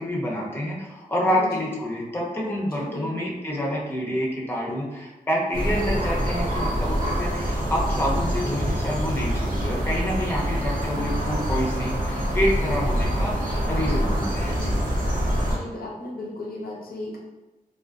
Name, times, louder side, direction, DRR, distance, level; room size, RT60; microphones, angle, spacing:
voice 1, 0.0-14.8, equal, 15° left, -3 dB, 0.6 m, -28 dB
voice 2, 2.7-3.4 10.9-11.2 15.4-17.2, left 1 dB, 85° left, -3 dB, 0.5 m, -36 dB
sound 1, 5.5-15.6, equal, 70° right, 0.6 m, -25 dB
2.4 x 2.3 x 2.4 m, 1.1 s
cardioid pair, 45°, 15 cm